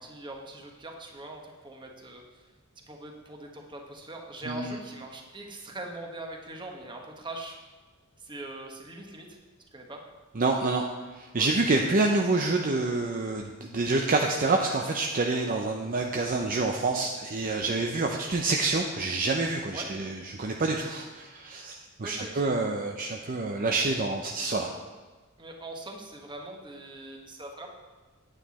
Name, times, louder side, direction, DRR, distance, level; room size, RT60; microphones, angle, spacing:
voice 1, 0.0-2.4 2.9-7.6 8.2-9.4 9.7-10.0 11.4-11.5 19.7-19.9 22.0-22.5 25.4-27.7, right 2 dB, 25° right, 2 dB, 1.3 m, -42 dB
voice 2, 4.5-4.8 10.3-10.9 11.1-24.7, right 3 dB, 40° right, 2 dB, 0.6 m, -27 dB
9.0 x 9.0 x 4.2 m, 1.3 s
head